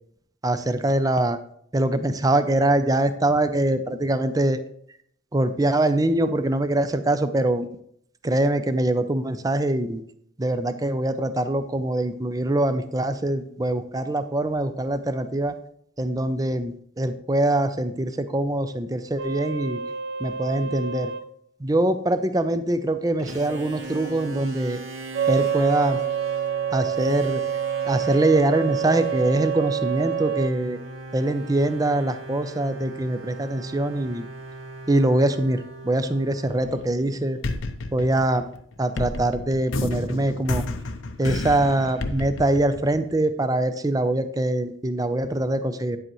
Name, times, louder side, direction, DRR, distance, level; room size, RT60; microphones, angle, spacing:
voice 1, 0.4-1.4 1.7-4.6 5.3-7.7 8.2-10.0 10.4-15.5 16.0-19.8 20.2-21.1 21.6-24.8 25.3-26.0 26.7-27.4 27.8-30.8 31.1-34.3 34.9-37.4 37.9-38.5 38.8-40.6 41.2-46.0, right 1 dB, 20° right, 10 dB, 0.5 m, -23 dB
sound 1, 19.2-21.2 25.1-30.5, right 8 dB, 55° right, 0.6 m, -27 dB
sound 2, 23.2-37.8, right 2 dB, 80° right, 2.1 m, -39 dB
sound 3, 36.5-37.1 37.4-43.3, left 2 dB, 75° left, 0.7 m, -31 dB
9.7 x 7.7 x 3.0 m, 0.67 s
head